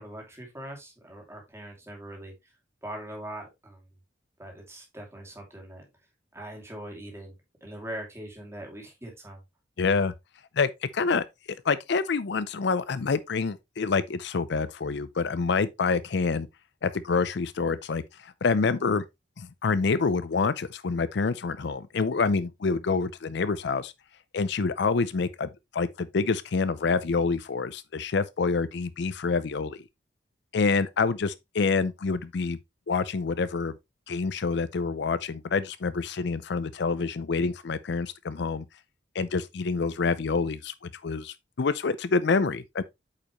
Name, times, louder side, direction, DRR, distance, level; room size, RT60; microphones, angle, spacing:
voice 1, 0.0-2.5 2.8-3.8 4.4-5.9 6.3-7.3 7.6-9.4, right 1 dB, 15° right, 2.4 m, -41 dB
voice 2, 9.8-10.1 10.6-11.2 11.6-16.5 16.8-19.0 19.4-23.9 24.3-29.8 30.5-32.6 32.9-33.7 34.1-38.6 39.1-42.8, left 4 dB, 60° left, 0.5 m, -27 dB
8.5 x 5.1 x 3.0 m
head